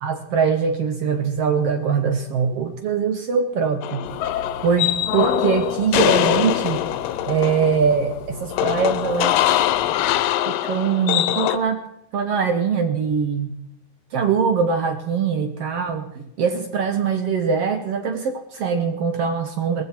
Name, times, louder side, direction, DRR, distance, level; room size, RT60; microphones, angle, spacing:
voice 1, 0.0-4.0 4.6-6.8 7.3-9.5 10.5-11.8 12.1-13.5 14.1-19.8, right 6 dB, 70° right, 7 dB, 1.4 m, -22 dB
sound 1, 3.8-11.6, left 13 dB, 75° left, 2.3 m, -22 dB
sound 2, 4.0-10.3, equal, 15° right, 1.1 m, -41 dB
20.0 x 14.5 x 4.4 m, 0.78 s
omnidirectional pair, 4.2 m